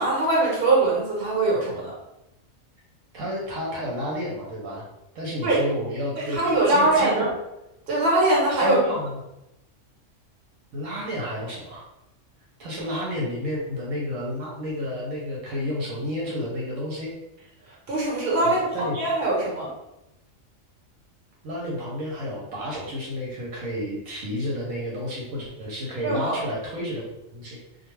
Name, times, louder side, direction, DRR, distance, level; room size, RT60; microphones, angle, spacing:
voice 1, 0.0-1.9 5.4-5.6 6.2-7.3 7.9-8.8 17.9-19.7 26.0-26.4, right 2 dB, 55° right, -4 dB, 1.1 m, -22 dB
voice 2, 3.1-4.8 5.1-6.4 6.7-7.2 8.6-9.1 10.7-11.9 12.6-17.1 18.4-19.0 21.4-27.0 27.3-27.6, equal, 80° right, -4 dB, 1.0 m, -31 dB
2.3 x 2.3 x 3.0 m, 0.89 s
omnidirectional pair, 1.3 m